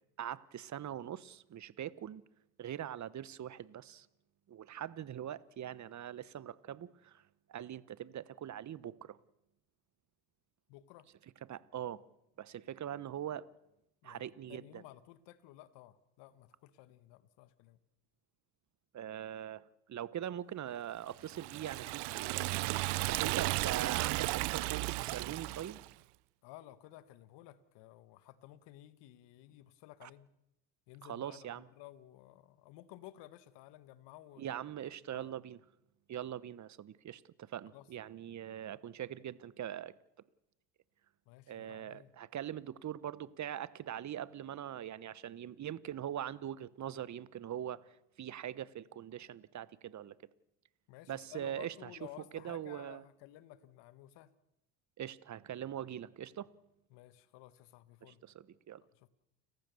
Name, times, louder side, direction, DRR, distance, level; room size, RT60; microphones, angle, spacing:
voice 1, 0.2-2.2 2.6-4.1 4.5-7.2 7.5-9.2 11.5-12.0 12.4-13.5 14.0-14.8 18.9-22.7 23.1-25.8 30.0-30.1 31.0-31.7 34.4-35.6 36.1-39.9 41.5-50.1 51.1-51.9 52.3-53.0 55.0-56.5 58.0-58.8, right 10 dB, 40° right, 1.2 m, -42 dB
voice 2, 10.7-11.1 14.0-17.8 26.4-30.3 30.9-34.5 35.1-35.3 37.7-37.9 41.2-42.1 50.9-54.3 56.9-58.2 58.9-59.1, left 14 dB, 65° left, 1.6 m, -55 dB
Liquid, 21.2-25.9, right 22 dB, 60° right, 0.7 m, -34 dB
30.0 x 15.0 x 7.0 m
hypercardioid pair, 75°, 45 cm